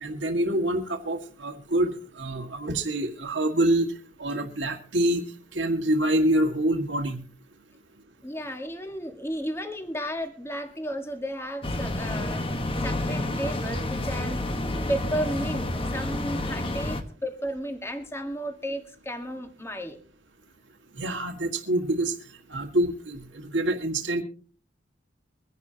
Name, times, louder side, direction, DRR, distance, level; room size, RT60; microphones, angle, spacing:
voice 1, 0.0-3.9 4.2-5.2 5.5-7.2 21.0-22.1 22.5-24.2, right 1 dB, 75° right, 4 dB, 1.8 m, -26 dB
voice 2, 8.2-20.0, equal, 15° left, 5 dB, 1.6 m, -33 dB
sound 1, 11.6-17.0, left 1 dB, 30° left, 1.3 m, -29 dB
24.0 x 10.5 x 2.8 m, 0.42 s
head